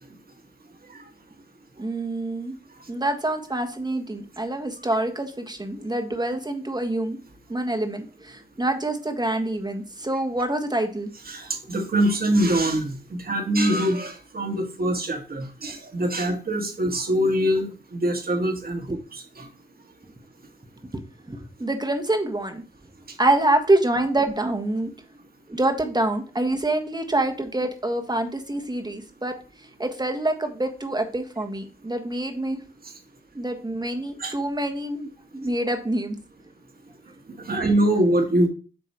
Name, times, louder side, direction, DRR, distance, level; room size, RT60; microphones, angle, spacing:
voice 1, 1.8-2.6 2.9-7.2 7.5-11.1 20.9-22.6 23.2-24.9 25.5-29.3 29.8-32.6 33.3-36.1 37.5-37.6, right 1 dB, 20° right, 5 dB, 1.4 m, -26 dB
voice 2, 11.3-19.5 34.2-34.3 37.5-38.5, right 1 dB, 45° right, 4 dB, 1.8 m, -24 dB
7.9 x 3.0 x 4.5 m, 0.36 s
supercardioid pair, 40°, 21 cm